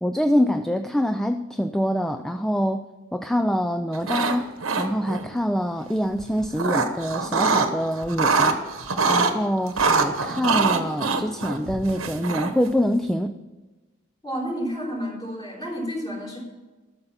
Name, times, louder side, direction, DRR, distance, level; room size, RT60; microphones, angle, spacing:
voice 1, 0.0-2.8 3.1-4.5 4.8-8.6 9.1-13.3, equal, ahead, 9 dB, 0.3 m, -25 dB
sound 1, 3.9-4.4 4.6-5.2 6.2-7.7 8.0-9.3 9.8-12.7, right 4 dB, 85° right, 1.1 m, -23 dB
voice 2, 14.2-16.4, equal, 20° left, -3 dB, 3.5 m, -30 dB
12.0 x 6.8 x 7.0 m, 1.2 s
head